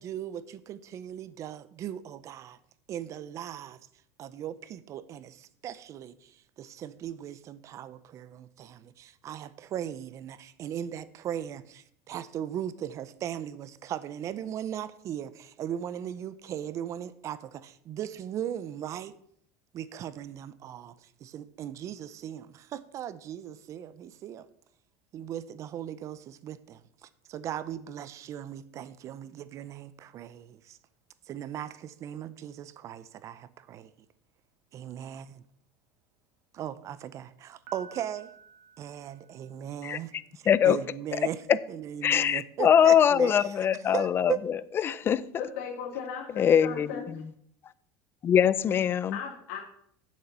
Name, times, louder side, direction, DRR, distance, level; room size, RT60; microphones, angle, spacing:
voice 1, 0.0-2.6 2.9-3.8 4.2-19.2 19.7-24.5 25.1-30.8 31.3-33.9 34.7-35.4 36.5-38.3 38.8-41.4 41.7-43.3 43.9-44.4, right 10 dB, 35° right, 0.6 m, -38 dB
Piano, 37.7-39.8, right 4 dB, 55° right, 1.8 m, -52 dB
voice 2, 40.5-40.8 41.5-41.6 42.0-45.4 46.4-47.2 48.2-49.2, left 9 dB, 25° left, 0.4 m, -23 dB
voice 3, 45.4-47.1 49.1-49.6, left 7 dB, 75° left, 2.5 m, -37 dB
8.5 x 7.5 x 6.8 m
supercardioid pair, 145°, 9 cm